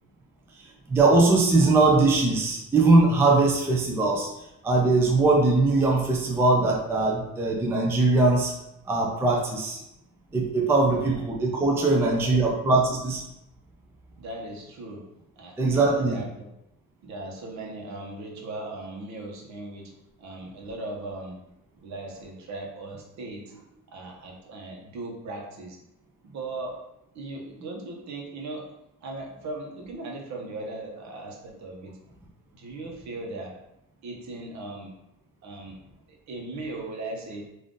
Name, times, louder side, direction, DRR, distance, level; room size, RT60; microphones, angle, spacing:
voice 1, 0.9-4.3 4.6-8.5 8.9-9.8 10.3-13.2 15.6-16.2, right 3 dB, 10° right, -1 dB, 0.4 m, -21 dB
voice 2, 11.8-12.5 14.2-15.1 15.4-16.5 17.0-21.4 21.8-23.5 23.9-25.8 26.2-26.9 27.1-28.7 29.0-32.0 32.5-33.6 34.0-34.9 35.4-35.8 36.3-37.5, right 2 dB, 55° right, 0 dB, 0.9 m, -38 dB
3.7 x 2.6 x 3.6 m, 0.84 s
cardioid pair, 150°, 33 cm